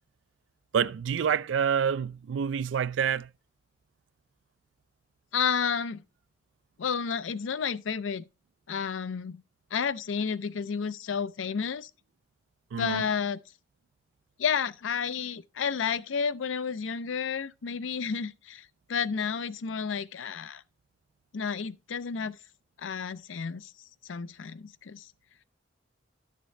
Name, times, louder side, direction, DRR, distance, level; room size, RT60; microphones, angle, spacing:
voice 1, 0.7-3.3 12.7-13.0, right 7 dB, 75° right, 0.4 m, -27 dB
voice 2, 5.3-6.0 6.8-8.2 8.7-9.4 9.7-11.9 12.8-13.4 14.4-20.6 21.3-22.4 22.8-23.7 24.1-25.1, left 6 dB, 90° left, 0.5 m, -31 dB
11.0 x 6.7 x 3.2 m
head